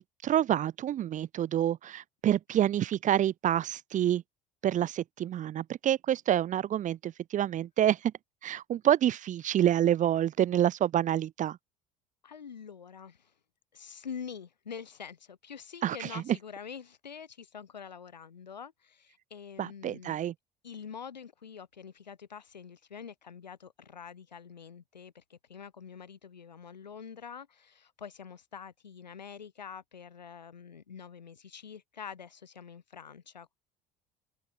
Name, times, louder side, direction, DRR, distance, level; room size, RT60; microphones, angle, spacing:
voice 1, 0.0-4.2 4.6-8.1 8.4-11.6 15.8-16.2 19.6-20.3, right 11 dB, 35° right, 0.6 m, -28 dB
voice 2, 12.2-13.3 13.7-20.2 20.6-33.6, left 7 dB, 85° left, 6.1 m, -46 dB
figure-of-eight pair, 65°, 21 cm